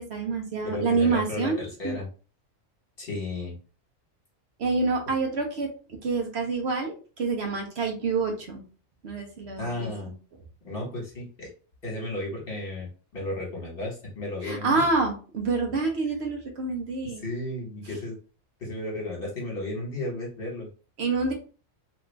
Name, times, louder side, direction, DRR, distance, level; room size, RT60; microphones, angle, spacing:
voice 1, 0.0-1.6 1.8-2.0 4.6-5.7 6.0-8.6 9.0-9.9 14.4-17.2 21.0-21.3, right 4 dB, 65° right, 2 dB, 1.0 m, -27 dB
voice 2, 0.6-2.1 3.0-3.5 9.6-10.1 10.6-11.5 11.8-14.9 16.0-16.2 17.0-18.2 18.6-20.7, left 2 dB, 50° left, -3 dB, 1.5 m, -34 dB
3.1 x 2.4 x 3.3 m, 0.37 s
omnidirectional pair, 1.3 m